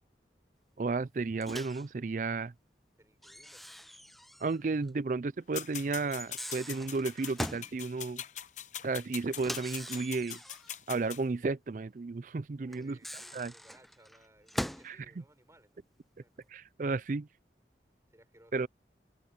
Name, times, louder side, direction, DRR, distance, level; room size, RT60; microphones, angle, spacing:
voice 1, 0.8-2.5 4.4-8.2 8.8-10.4 10.9-13.0 13.3-13.5 14.8-15.0 16.5-17.3 18.5-18.7, right 3 dB, 45° right, 0.4 m, -33 dB
Microwave oven, 1.4-1.9 3.2-4.6 4.9-5.0 6.1-7.7 9.3-10.7 12.7-14.9, equal, ahead, 0.6 m, -41 dB
voice 2, 3.0-3.7 12.6-15.8 16.2-16.5 18.1-18.7, right 1 dB, 15° right, 5.5 m, -62 dB
sound 1, 5.5-11.2, left 10 dB, 45° left, 0.9 m, -42 dB
head